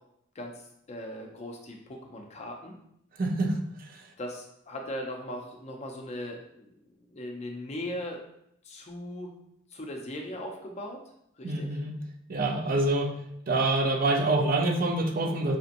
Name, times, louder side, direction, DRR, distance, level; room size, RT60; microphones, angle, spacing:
voice 1, 0.9-2.7 4.2-8.2 8.6-9.3 9.7-11.0 11.4-11.7, left 1 dB, 35° left, 2 dB, 0.6 m, -38 dB
voice 2, 3.2-3.5 11.4-11.9 12.3-13.1 13.5-15.6, right 2 dB, 45° right, 2 dB, 0.5 m, -26 dB
4.9 x 2.8 x 2.6 m, 0.75 s
head